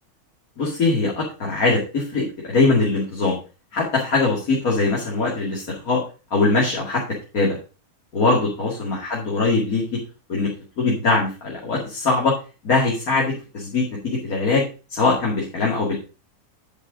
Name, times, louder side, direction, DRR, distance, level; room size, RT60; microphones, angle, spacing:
voice 1, 0.6-3.4 3.7-6.0 6.3-7.0 7.3-7.6 8.1-10.0 10.3-10.5 10.8-12.4 12.6-14.6 14.9-16.0, left 3 dB, 70° left, -4 dB, 2.8 m, -21 dB
10.5 x 5.7 x 5.0 m, 0.34 s
omnidirectional pair, 1.6 m